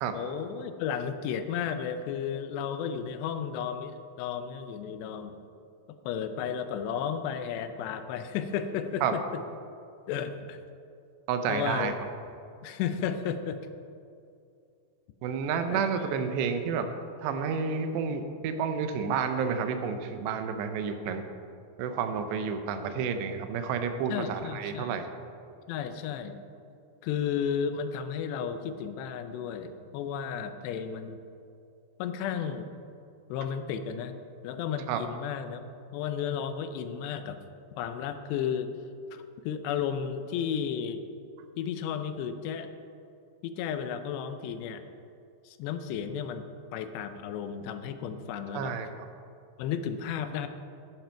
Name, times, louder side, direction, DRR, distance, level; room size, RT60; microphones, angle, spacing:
voice 1, 0.1-5.4 5.9-9.2 10.1-10.6 11.5-12.0 12.6-13.6 15.7-15.8 24.1-25.0 25.7-26.4 27.0-31.2 32.0-32.7 33.3-34.1 34.4-35.6 35.9-37.4 37.8-38.7 39.1-41.0 41.6-42.7 43.4-44.8 45.5-46.5 46.7-48.7 49.6-50.5, left 8 dB, 85° left, 9 dB, 2.8 m, -33 dB
voice 2, 11.3-11.9 15.2-16.9 17.2-21.2 21.8-25.1 34.9-35.0 48.5-48.9, right 6 dB, 85° right, 8 dB, 3.0 m, -30 dB
12.0 x 10.5 x 4.6 m, 2.5 s
omnidirectional pair, 4.9 m